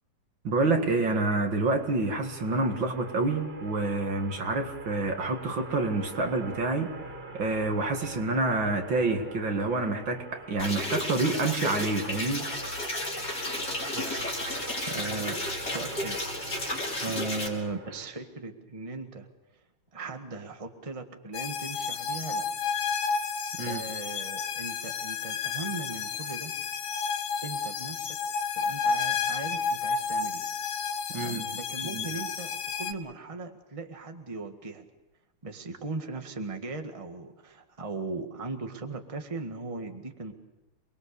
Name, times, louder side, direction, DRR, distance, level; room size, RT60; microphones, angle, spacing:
voice 1, 0.4-6.9 7.3-12.5 23.6-23.8 31.1-31.5 31.9-32.1, right 3 dB, 65° right, 4 dB, 2.8 m, -28 dB
sound 1, 1.3-18.0, right 2 dB, 85° right, 5.0 m, -43 dB
sound 2, 10.6-17.5, left 1 dB, 40° left, 5.2 m, -33 dB
voice 2, 13.9-14.3 14.9-16.2 17.0-19.3 19.9-22.7 23.6-26.5 27.4-28.2 28.5-30.4 31.1-34.8 35.4-40.3, right 3 dB, 15° right, 4 dB, 1.6 m, -38 dB
sound 3, 21.3-32.9, left 5 dB, 75° left, 1.9 m, -31 dB
28.5 x 21.5 x 7.0 m, 1.0 s
omnidirectional pair, 2.3 m